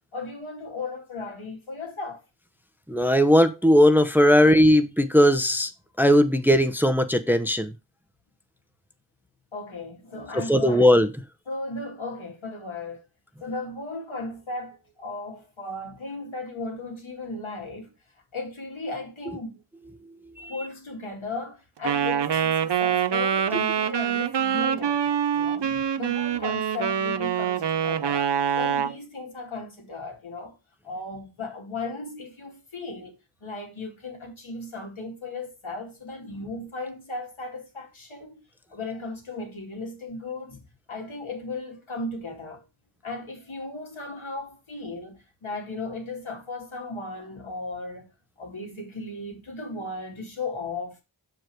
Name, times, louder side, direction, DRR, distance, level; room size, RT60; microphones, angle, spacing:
voice 1, 0.1-2.2 9.5-10.9 11.5-13.0 13.4-17.9 18.3-19.6 20.5-30.6 30.8-38.3 38.7-40.6 40.9-42.6 43.0-48.1 48.4-51.0, left 3 dB, 75° left, 2.4 m, -36 dB
voice 2, 2.9-5.7 6.0-7.7 10.5-11.1 20.4-20.5, equal, 5° right, 0.8 m, -18 dB
Wind instrument woodwind instrument, 21.8-29.0, right 8 dB, 60° right, 0.7 m, -25 dB
6.3 x 4.9 x 4.5 m
wide cardioid pair, 45°, 48 cm